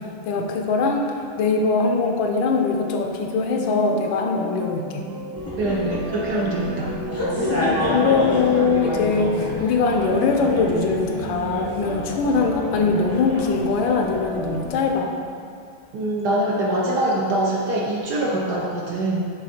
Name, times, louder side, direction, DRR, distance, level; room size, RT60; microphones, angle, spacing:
voice 1, 0.0-5.1 7.9-15.1, left 4 dB, 75° left, 2 dB, 1.3 m, -22 dB
sound 1, 3.5-14.7, right 2 dB, 85° right, 0.7 m, -34 dB
sound 2, 5.3-14.8, left 1 dB, 25° left, 0.3 m, -29 dB
voice 2, 5.6-6.9 15.9-19.2, right 1 dB, 65° right, -3 dB, 1.0 m, -23 dB
7.2 x 3.4 x 4.2 m, 2.3 s
omnidirectional pair, 2.2 m